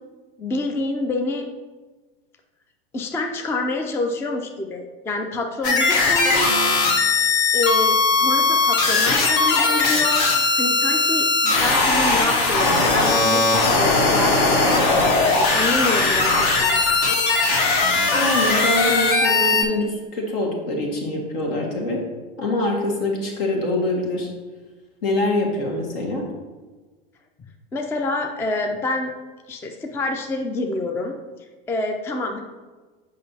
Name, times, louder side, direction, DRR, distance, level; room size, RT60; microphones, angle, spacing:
voice 1, 0.4-1.5 2.9-6.8 7.5-14.7 15.4-16.8 27.7-29.1 29.5-31.2 31.7-32.4, left 2 dB, 10° left, 4 dB, 0.3 m, -27 dB
sound 1, 5.6-19.6, left 3 dB, 50° left, 1.1 m, -19 dB
voice 2, 18.1-22.0 22.4-24.3 25.0-26.3, left 1 dB, 65° left, 0 dB, 1.7 m, -24 dB
6.6 x 5.5 x 2.7 m, 1.3 s
hypercardioid pair, 100°, 30 cm